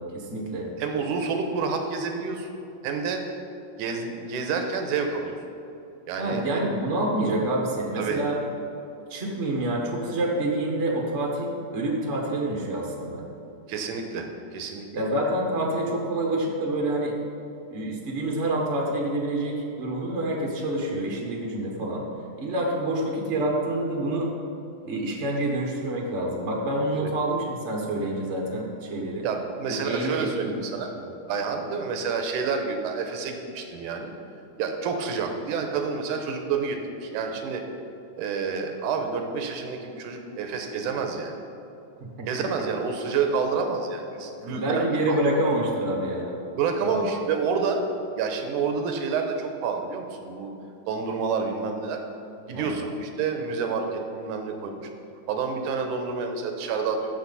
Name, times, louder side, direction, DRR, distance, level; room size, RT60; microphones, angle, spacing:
voice 1, 0.0-0.7 6.2-8.4 9.1-13.3 14.9-17.1 17.7-22.0 22.4-24.3 24.8-29.2 29.7-30.5 30.9-31.1 42.2-42.3 44.5-46.3 46.8-47.0 52.5-52.8, right 1 dB, 70° right, -1 dB, 0.6 m, -27 dB
voice 2, 0.8-2.5 2.8-3.2 3.8-5.4 6.1-6.6 8.0-8.2 13.7-14.9 26.9-27.1 29.2-30.9 31.3-34.1 34.6-37.6 38.2-41.3 42.3-45.2 46.6-47.8 48.2-50.5 50.9-52.0 52.5-54.8 55.3-57.1, right 5 dB, 90° right, 4 dB, 2.4 m, -28 dB
14.5 x 6.5 x 4.1 m, 2.8 s
omnidirectional pair, 3.5 m